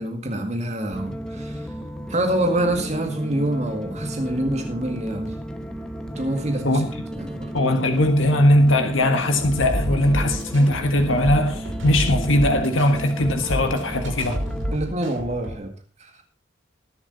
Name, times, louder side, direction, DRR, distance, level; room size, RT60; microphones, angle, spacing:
voice 1, 0.0-1.7 2.1-5.3 6.2-6.9 7.1-7.5 14.7-15.7 16.0-16.1, right 1 dB, 35° right, 2.0 m, -26 dB
sound 1, 0.9-14.8, equal, 5° left, 1.1 m, -34 dB
voice 2, 7.5-14.4, left 1 dB, 80° left, 1.5 m, -20 dB
sound 2, 9.4-15.5, equal, 85° right, 5.1 m, -29 dB
20.5 x 7.3 x 4.0 m
head